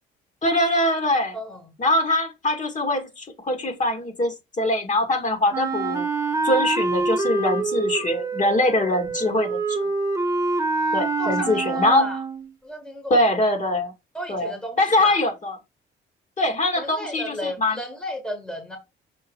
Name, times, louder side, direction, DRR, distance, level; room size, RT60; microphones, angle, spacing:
voice 1, 0.4-1.4 1.8-6.1 6.4-9.8 10.9-12.1 13.1-13.9 14.3-15.6 16.4-17.8, left 1 dB, 40° left, 2.1 m, -23 dB
voice 2, 1.3-1.7 9.8-9.9 11.2-12.2 12.6-13.2 14.1-15.2 16.7-18.8, equal, 5° left, 1.7 m, -34 dB
Wind instrument woodwind instrument, 5.5-12.5, right 3 dB, 15° right, 1.6 m, -26 dB
6.4 x 3.4 x 4.6 m
cardioid pair, 90°, 20 cm